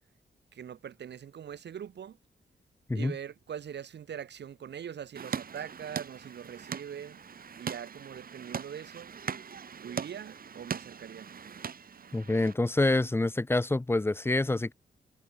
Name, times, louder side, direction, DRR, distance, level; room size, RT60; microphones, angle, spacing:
voice 1, 0.5-2.2 2.9-7.2 7.6-9.1 9.8-11.3, right 8 dB, 85° right, 4.6 m, -42 dB
sound 1, 5.2-12.5, right 6 dB, 60° right, 2.1 m, -40 dB
voice 2, 12.1-14.7, left 2 dB, 15° left, 0.7 m, -27 dB
cardioid pair, 90°, 17 cm